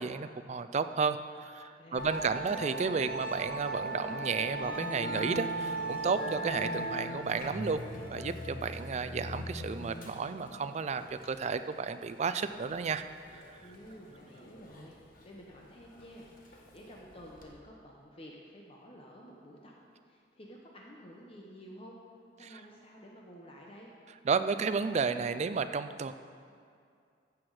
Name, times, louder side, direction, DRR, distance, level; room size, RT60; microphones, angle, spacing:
voice 1, 0.0-7.8 8.1-13.0 13.3-13.6 22.4-22.6 24.2-26.1, right 5 dB, 40° right, 10 dB, 0.4 m, -32 dB
voice 2, 1.8-2.4 13.6-19.7 20.0-22.0 22.4-23.9, equal, 30° left, -2 dB, 1.0 m, -51 dB
Musical instrument, 2.0-17.5, right 1 dB, 50° left, 1.2 m, -39 dB
15.0 x 6.1 x 4.8 m, 2.3 s
head